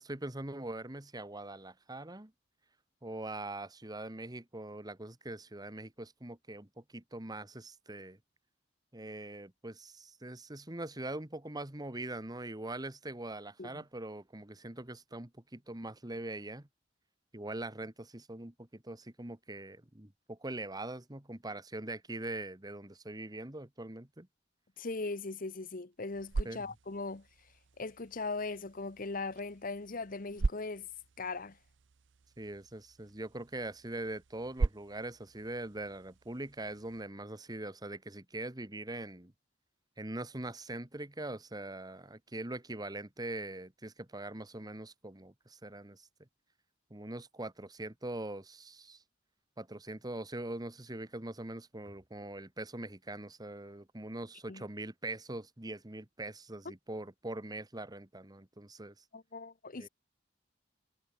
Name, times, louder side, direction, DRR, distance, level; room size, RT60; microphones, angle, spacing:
voice 1, 0.0-2.3 3.0-8.2 8.9-16.7 17.3-24.3 26.4-26.6 32.4-39.3 40.0-46.0 46.9-49.0 49.6-58.9 59.8-59.9, right 2 dB, 20° right, 1.5 m, -42 dB
voice 2, 24.8-27.3 27.8-30.9 31.2-31.6 54.5-54.6 59.1-59.9, left 3 dB, 45° left, 1.1 m, -39 dB
sound 1, 25.9-37.0, right 3 dB, 75° right, 0.7 m, -41 dB
head